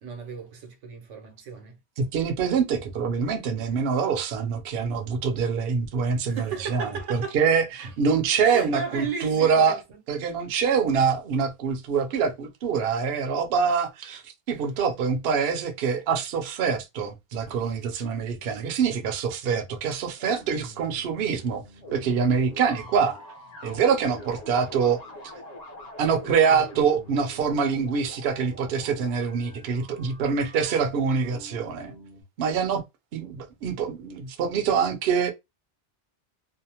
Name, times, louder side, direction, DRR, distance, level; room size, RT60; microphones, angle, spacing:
voice 1, 0.0-1.8 6.3-7.3 7.8-7.9 8.4-10.0 17.5-17.8, right 6 dB, 90° right, 1.1 m, -35 dB
voice 2, 2.0-9.8 10.1-14.2 14.5-21.6 21.9-23.2 23.6-25.0 26.0-31.9 32.4-32.8 33.1-35.3, right 6 dB, 65° right, 0.7 m, -25 dB
sound 1, 20.2-32.2, left 1 dB, 40° left, 0.8 m, -44 dB
2.6 x 2.0 x 2.8 m
omnidirectional pair, 1.2 m